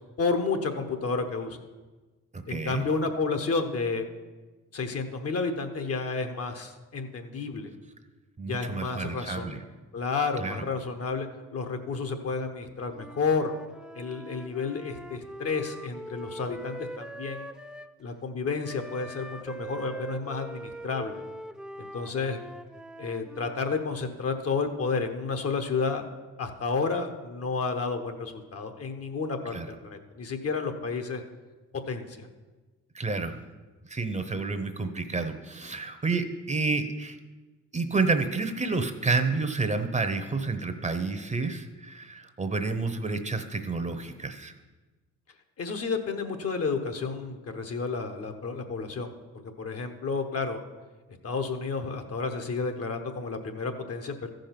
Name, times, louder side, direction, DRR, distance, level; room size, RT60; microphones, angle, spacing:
voice 1, 0.2-1.6 2.5-4.1 4.7-7.7 8.4-9.6 9.9-13.5 13.9-17.5 18.0-21.2 21.8-22.4 23.0-26.1 26.4-31.2 31.9-32.3 45.6-49.1 49.6-50.6 51.2-54.3, left 4 dB, 50° left, 6 dB, 1.1 m, -31 dB
voice 2, 2.3-2.8 8.4-9.6 10.4-10.7 29.5-29.7 32.9-33.4 33.9-37.2 37.7-44.5, right 3 dB, 25° right, 8 dB, 0.8 m, -29 dB
Wind instrument woodwind instrument, 12.9-17.9 18.6-23.6, right 1 dB, 5° right, 0.3 m, -42 dB
14.0 x 5.2 x 5.9 m, 1.2 s
cardioid pair, 90°, 30 cm